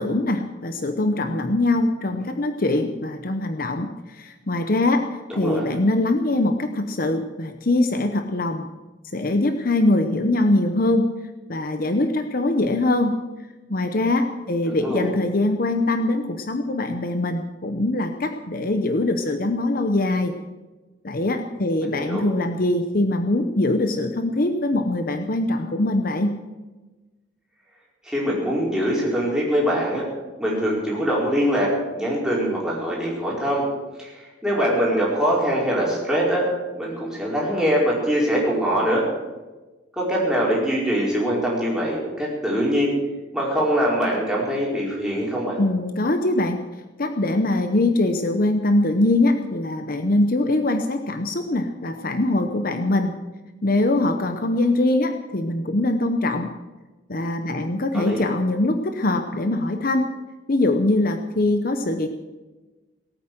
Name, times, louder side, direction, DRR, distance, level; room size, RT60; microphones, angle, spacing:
voice 1, 0.0-5.0 5.3-8.7 9.1-11.1 11.5-13.2 13.7-20.3 21.0-26.3 45.6-46.6 47.0-53.1 53.6-56.5 57.1-60.1 60.5-62.1, left 2 dB, 50° left, 6 dB, 0.9 m, -22 dB
voice 2, 5.3-5.6 14.7-15.1 21.8-22.2 28.0-30.0 30.4-33.7 34.0-36.5 36.7-39.0 40.0-42.9 43.3-45.6 57.9-58.2, equal, 5° right, -5 dB, 4.7 m, -23 dB
18.5 x 8.9 x 7.8 m, 1.2 s
head